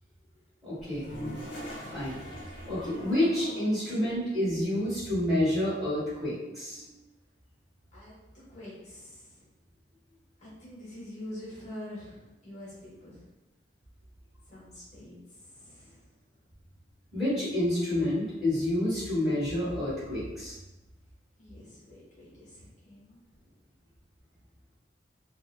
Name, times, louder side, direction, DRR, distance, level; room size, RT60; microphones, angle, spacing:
voice 1, 0.6-1.1 1.9-2.2 2.7-6.9 17.1-20.6, left 1 dB, ahead, -11 dB, 1.5 m, -29 dB
Toilet flush, 0.8-3.9, equal, 60° left, 1.1 m, -41 dB
voice 2, 7.9-9.5 10.4-13.2 14.5-16.1 21.4-23.5, left 1 dB, 40° left, -7 dB, 1.2 m, -46 dB
3.5 x 2.1 x 2.3 m, 1.1 s
head